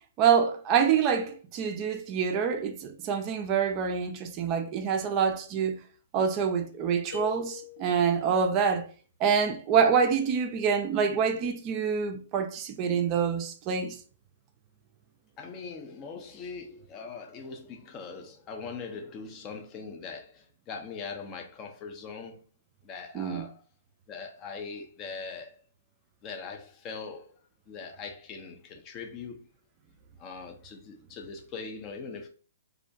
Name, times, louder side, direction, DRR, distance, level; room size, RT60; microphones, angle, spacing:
voice 1, 0.2-5.7 6.1-8.9 9.2-14.0 23.1-23.4, right 7 dB, 30° right, 0.3 m, -26 dB
sound 1, 7.1-8.2, left 11 dB, 70° left, 1.1 m, -42 dB
voice 2, 15.4-22.4 22.8-23.6 24.1-25.6 26.2-27.3 27.7-29.5 30.2-32.3, left 5 dB, 25° left, 0.5 m, -41 dB
2.4 x 2.1 x 2.5 m
figure-of-eight pair, 120°, 0 cm